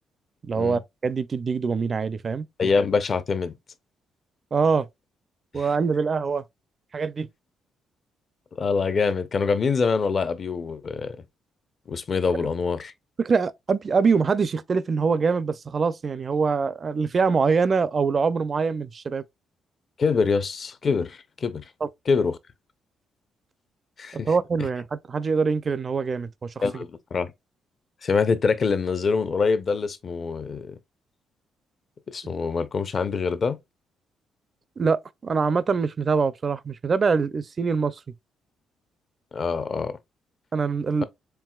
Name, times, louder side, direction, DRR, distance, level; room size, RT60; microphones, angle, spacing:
voice 1, 0.4-2.5 4.5-4.9 5.5-6.4 6.9-7.3 12.4-12.5 13.2-19.2 21.8-21.9 24.2-26.8 34.8-38.0 40.5-41.0, right 5 dB, 40° right, 0.4 m, -24 dB
voice 2, 2.6-3.5 5.6-5.7 8.6-11.2 11.9-12.9 20.0-21.6 22.1-22.4 24.0-24.3 26.6-27.3 28.0-30.8 32.1-33.6 39.3-40.0, left 5 dB, 45° left, 0.6 m, -25 dB
4.6 x 3.6 x 2.3 m
cardioid pair, 90°, 0 cm